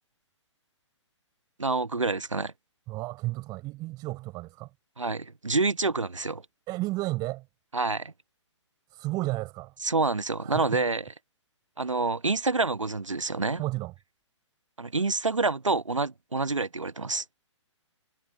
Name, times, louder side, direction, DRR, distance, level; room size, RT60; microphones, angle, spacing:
voice 1, 1.6-2.5 5.0-6.4 7.7-8.1 9.8-11.1 11.8-13.6 14.8-17.2, right 3 dB, 90° right, 1.1 m, -27 dB
voice 2, 2.9-4.7 6.7-7.4 8.9-9.7 10.4-10.8 13.6-13.9, right 20 dB, 25° right, 5.6 m, -32 dB
figure-of-eight pair, 130°, 16 cm